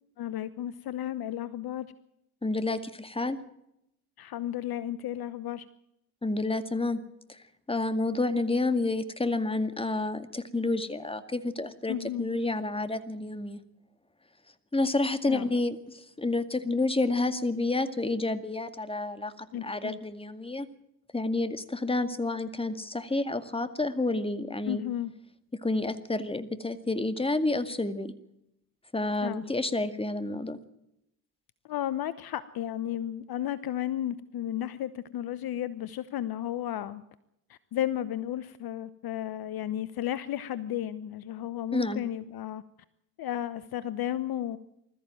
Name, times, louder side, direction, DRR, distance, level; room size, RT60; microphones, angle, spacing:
voice 1, 0.2-1.9 4.2-5.6 11.9-12.3 15.3-15.5 19.5-20.0 24.7-25.1 29.2-29.4 31.7-37.0 37.5-42.6 43.2-44.6, left 11 dB, 50° left, 16 dB, 1.0 m, -33 dB
voice 2, 2.4-3.4 6.2-7.0 7.3-7.4 7.7-13.6 14.7-20.7 21.1-24.8 25.5-28.1 28.9-30.6 41.7-42.0, left 2 dB, 10° left, 12 dB, 2.1 m, -29 dB
20.5 x 14.0 x 9.0 m, 0.81 s
hypercardioid pair, 55°, 46 cm